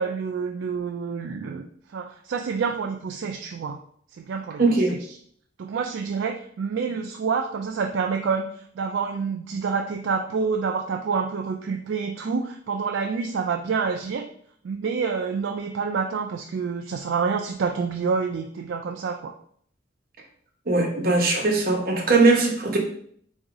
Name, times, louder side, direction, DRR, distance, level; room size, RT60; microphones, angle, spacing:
voice 1, 0.0-1.7 1.9-3.8 4.2-4.6 4.9-5.0 5.6-14.3 14.6-19.3, right 5 dB, 65° right, 3 dB, 0.3 m, -27 dB
voice 2, 4.6-5.0 20.7-22.8, right 3 dB, 50° right, 1 dB, 0.9 m, -20 dB
3.8 x 2.7 x 4.7 m, 0.62 s
head